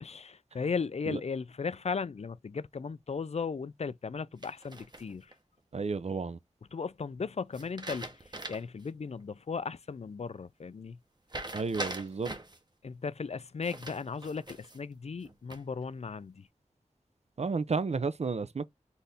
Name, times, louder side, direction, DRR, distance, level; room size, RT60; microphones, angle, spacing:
voice 1, 0.0-5.3 6.7-11.0 12.8-16.5, left 5 dB, 55° left, 0.4 m, -36 dB
sound 1, 4.4-5.3 7.5-8.8 9.2-9.3 11.3-12.6 13.6-14.8 15.2-15.8, right 1 dB, 35° right, 1.0 m, -41 dB
voice 2, 5.7-6.4 11.5-12.4 17.4-18.7, right 4 dB, 55° right, 0.5 m, -32 dB
4.1 x 2.6 x 3.5 m
wide cardioid pair, 60°, 13 cm